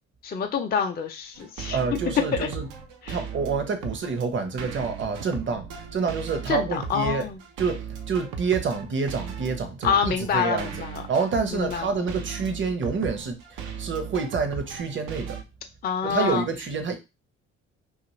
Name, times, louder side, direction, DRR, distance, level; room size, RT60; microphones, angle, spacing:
voice 1, 0.2-2.0 2.3-2.5 3.0-3.2 6.5-7.4 9.8-11.0 11.5-12.2 15.8-16.4 16.9-17.0, left 7 dB, 30° left, 0.5 m, -27 dB
sound 1, 1.4-15.4, right 7 dB, 70° right, 0.6 m, -37 dB
voice 2, 1.7-2.7 3.1-7.3 7.6-10.7 11.1-15.4 16.0-17.0, right 5 dB, 35° right, 0.8 m, -28 dB
2.5 x 2.5 x 3.0 m
hypercardioid pair, 55°, 34 cm